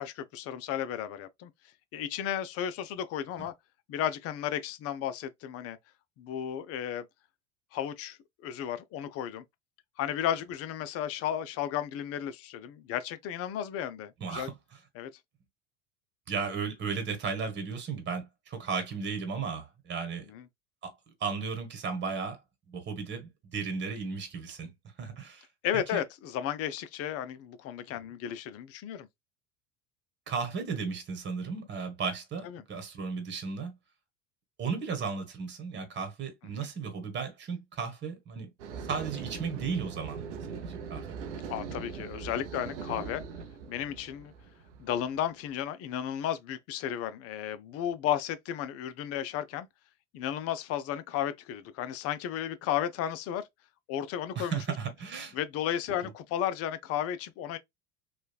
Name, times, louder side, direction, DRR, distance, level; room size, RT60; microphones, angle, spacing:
voice 1, 0.0-1.5 1.9-3.5 3.9-5.8 6.2-7.1 7.7-9.4 10.0-14.5 14.9-15.1 20.3-20.4 25.6-29.1 32.4-32.6 41.5-43.2 43.7-44.3 44.8-49.7 50.1-53.5 53.9-54.6 55.3-57.6, left 10 dB, 40° left, 0.5 m, -33 dB
voice 2, 14.2-14.5 16.3-20.3 20.8-20.9 21.2-22.4 22.7-24.7 25.0-25.4 25.9-26.0 30.3-33.7 34.6-38.5 38.9-40.2 40.5-41.1 54.3-55.3 56.0-56.1, right 5 dB, 30° right, 1.2 m, -35 dB
sound 1, 38.6-45.5, right 6 dB, 75° right, 0.7 m, -41 dB
3.1 x 2.3 x 2.3 m
hypercardioid pair, 75°, 36 cm